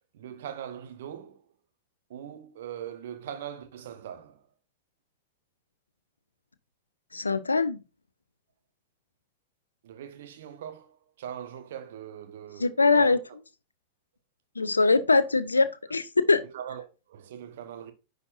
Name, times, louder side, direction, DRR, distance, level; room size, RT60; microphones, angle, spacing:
voice 1, 0.1-1.4 2.1-4.4 9.8-13.2 16.4-17.9, right 9 dB, 55° right, 1.0 m, -41 dB
voice 2, 7.1-7.8 12.6-13.2 14.6-16.4, left 3 dB, 80° left, 0.5 m, -22 dB
9.8 x 4.1 x 2.6 m
figure-of-eight pair, 90°, 0 cm